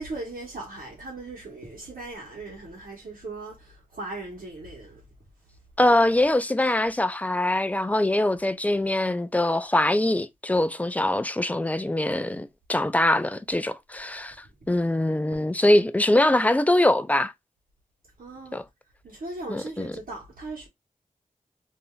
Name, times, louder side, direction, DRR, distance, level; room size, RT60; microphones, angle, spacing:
voice 1, 0.0-5.0 18.2-18.6 19.0-20.7, right 2 dB, 85° right, 1.0 m, -38 dB
voice 2, 5.8-14.4 14.7-17.3 18.5-18.6 19.5-19.9, left 1 dB, 10° left, 0.3 m, -23 dB
3.3 x 2.6 x 2.3 m
wide cardioid pair, 65°, 14 cm